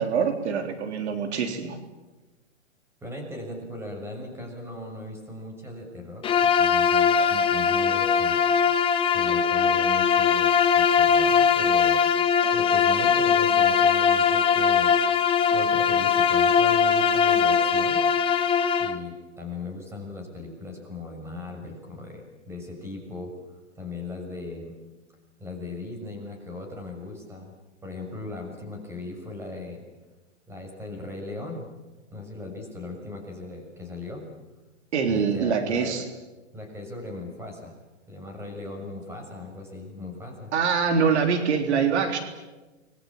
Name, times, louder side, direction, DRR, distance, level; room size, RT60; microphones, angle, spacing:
voice 1, 0.0-1.8 34.9-36.0 40.5-42.2, right 6 dB, 60° right, 6 dB, 3.6 m, -24 dB
voice 2, 3.0-8.4 9.1-10.5 10.8-12.0 12.5-14.9 15.5-18.0 18.8-23.3 23.7-24.7 25.4-27.5 27.8-29.8 30.5-31.7 32.1-34.2 35.1-36.0 36.5-37.8 38.1-40.5, left 2 dB, 5° right, 2 dB, 6.6 m, -38 dB
Bowed string instrument, 6.2-19.0, left 7 dB, 15° left, 1.2 m, -21 dB
29.5 x 22.0 x 8.8 m, 1.2 s
hypercardioid pair, 140°, 37 cm